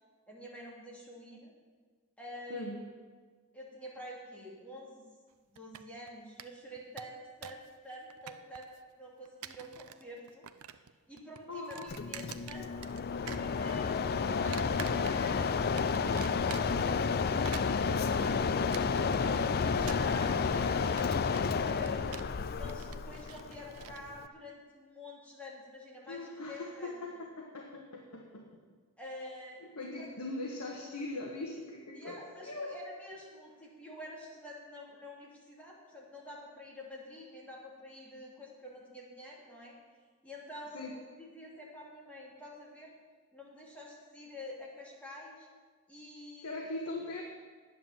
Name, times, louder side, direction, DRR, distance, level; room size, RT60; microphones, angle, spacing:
voice 1, 0.3-1.5 2.2-2.8 3.5-5.1 5.5-8.7 9.0-10.5 11.1-12.7 13.2-17.0 17.5-20.8 21.2-27.1 29.0-30.1 31.9-39.8 40.2-42.9 43.3-45.5 45.9-46.5, left 1 dB, 5° left, -4 dB, 2.7 m, -48 dB
sound 1, 5.6-6.1 6.4-6.5 6.8-7.7 7.9-8.8 9.3-10.0 10.3-10.9 11.2-13.0 13.3-14.0 14.5-15.4 15.8-16.9 17.3-24.0, right 9 dB, 75° right, 0.5 m, -47 dB
voice 2, 11.5-11.9 26.1-28.5 29.6-32.8 40.7-40.9 46.4-47.2, left 2 dB, 75° left, 0 dB, 1.4 m, -40 dB
Mechanisms, 11.9-24.3, left 5 dB, 45° left, 0.4 m, -31 dB
sound 2, 18.3-23.3, left 2 dB, 50° right, 2.6 m, -50 dB
10.5 x 9.2 x 7.3 m, 1.5 s
head